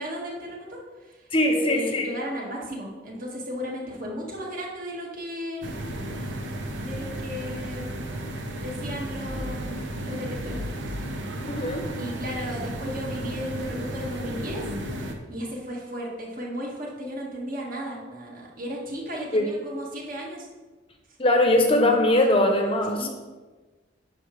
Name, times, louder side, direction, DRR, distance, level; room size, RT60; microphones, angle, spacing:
voice 1, 0.0-5.7 6.8-7.8 8.6-11.0 12.0-14.7 15.0-20.5 23.0-23.1, equal, 50° right, -3 dB, 1.9 m, -35 dB
voice 2, 1.3-2.1 11.4-11.8 19.3-19.5 21.2-23.1, left 1 dB, 30° left, 3 dB, 0.8 m, -21 dB
sound 1, 5.6-15.1, right 1 dB, 80° right, 1.0 m, -33 dB
10.5 x 5.8 x 3.3 m, 1.3 s
head